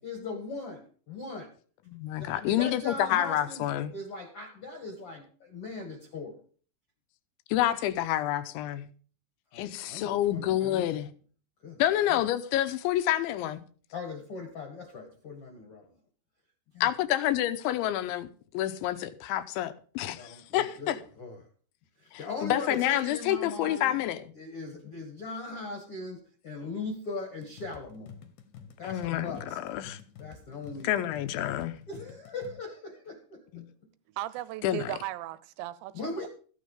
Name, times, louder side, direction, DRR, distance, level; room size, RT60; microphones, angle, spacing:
voice 1, 0.0-1.5 2.2-3.7 3.9-6.4 9.5-10.9 11.6-11.8 12.1-12.2 13.9-15.9 16.7-16.9 20.1-21.4 22.0-23.9 24.4-28.1 28.8-29.6 30.2-31.1 31.9-33.6 35.9-36.3, left 3 dB, 45° left, 1.9 m, -39 dB
voice 2, 1.9-3.9 7.5-8.9 9.5-11.1 11.8-13.6 16.8-18.3 18.5-21.0 22.1-24.3 28.8-30.0 30.8-31.8 33.5-33.6 34.6-35.0, left 13 dB, 85° left, 3.2 m, -28 dB
sound 1, 27.4-32.6, left 7 dB, 65° left, 2.4 m, -49 dB
voice 3, 34.2-35.9 36.2-36.3, right 15 dB, 80° right, 2.8 m, -36 dB
15.0 x 9.4 x 5.1 m
omnidirectional pair, 5.3 m